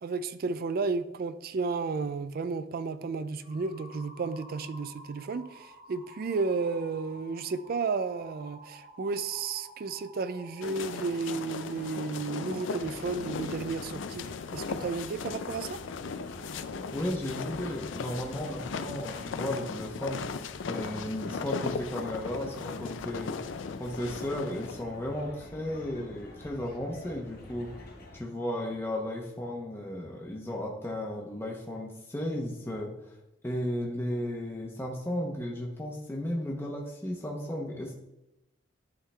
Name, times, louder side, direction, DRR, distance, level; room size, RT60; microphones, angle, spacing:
voice 1, 0.0-14.3 14.5-15.8, right 4 dB, 55° right, 13 dB, 0.4 m, -33 dB
sound 1, 3.4-12.7, equal, 75° right, 2.5 m, -52 dB
sound 2, 10.6-24.8, left 5 dB, 90° left, 0.4 m, -37 dB
sound 3, 12.8-28.2, left 1 dB, 55° left, 1.2 m, -49 dB
voice 2, 16.9-23.4 23.8-27.7 28.1-33.1 33.4-37.9, left 1 dB, 15° left, -2 dB, 0.9 m, -34 dB
11.0 x 3.7 x 3.3 m, 0.89 s
head